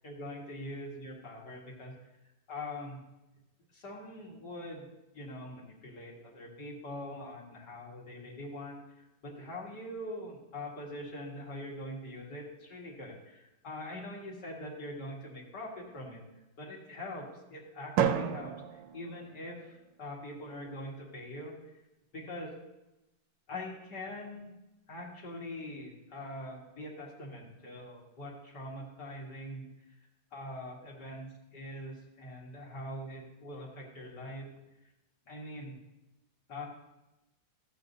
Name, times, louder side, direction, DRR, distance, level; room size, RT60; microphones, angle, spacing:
voice 1, 0.0-2.0 2.5-3.0 3.7-4.9 5.1-16.2 16.6-21.5 22.1-22.5 23.5-24.6 24.9-29.7 30.3-34.5 35.3-35.7 36.5-36.7, left 1 dB, 65° left, -3 dB, 2.4 m, -43 dB
Drum, 18.0-19.9, right 8 dB, 80° right, 1.3 m, -32 dB
14.0 x 8.2 x 2.7 m, 0.95 s
omnidirectional pair, 2.0 m